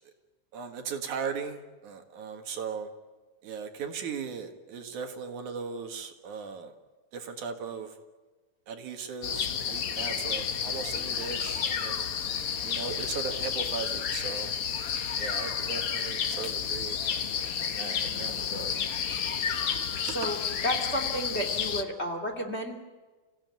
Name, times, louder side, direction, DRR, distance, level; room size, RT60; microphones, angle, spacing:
voice 1, 0.5-2.9 3.4-6.7 7.1-7.9 8.7-12.1 12.6-14.5 15.2-17.0 17.3-18.7 20.2-20.3, right 6 dB, 70° right, 5 dB, 3.1 m, -38 dB
sound 1, 9.2-21.8, left 7 dB, 55° left, 1.9 m, -31 dB
voice 2, 20.0-20.4 20.6-22.7, equal, 20° left, 4 dB, 2.9 m, -32 dB
29.5 x 16.5 x 9.4 m, 1.3 s
omnidirectional pair, 3.7 m